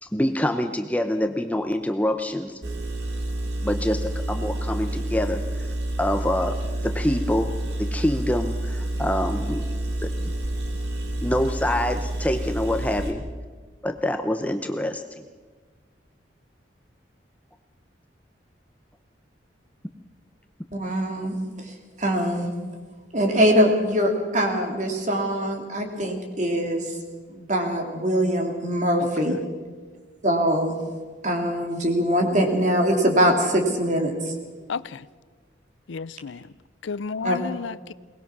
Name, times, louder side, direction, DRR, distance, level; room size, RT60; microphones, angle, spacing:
voice 1, 0.0-2.6 3.6-5.7 6.0-6.6 6.8-9.6 10.0-10.3 11.2-13.2 13.8-15.2, left 1 dB, 10° left, 7 dB, 0.7 m, -26 dB
Engine, 2.6-13.1, right 1 dB, 60° right, 2.4 m, -29 dB
voice 2, 20.7-22.5 23.1-27.0 27.3-29.3 30.2-30.8 31.2-34.4 37.2-37.4, equal, 40° right, 3 dB, 3.0 m, -23 dB
voice 3, 34.7-35.1 35.9-36.5 36.8-37.9, left 5 dB, 85° left, 18 dB, 0.5 m, -32 dB
22.5 x 19.5 x 6.1 m, 1.4 s
head